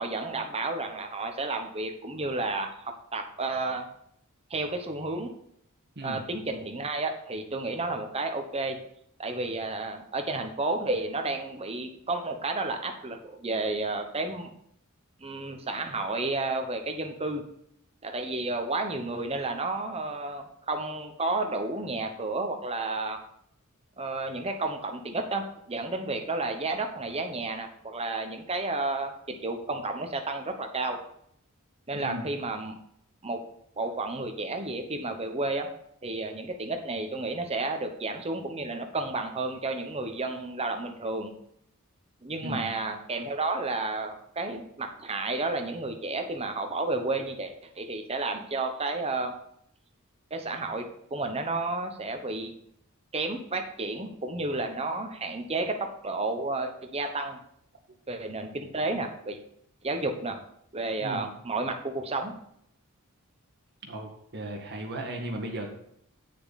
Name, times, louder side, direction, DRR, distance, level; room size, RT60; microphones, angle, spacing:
voice 1, 0.0-3.9 4.5-5.3 6.0-8.8 9.2-14.5 15.2-17.4 18.0-23.2 24.0-31.0 31.9-32.8 33.2-33.4 33.8-35.7 36.0-41.3 42.2-49.3 50.3-52.5 53.1-57.4 58.1-59.4 59.8-60.4 60.7-62.3, right 2 dB, 25° right, 5 dB, 1.0 m, -31 dB
voice 2, 31.9-32.3 42.4-42.7 61.0-61.3 63.8-65.7, right 1 dB, 50° right, 2 dB, 1.9 m, -36 dB
9.6 x 6.5 x 4.1 m, 0.71 s
head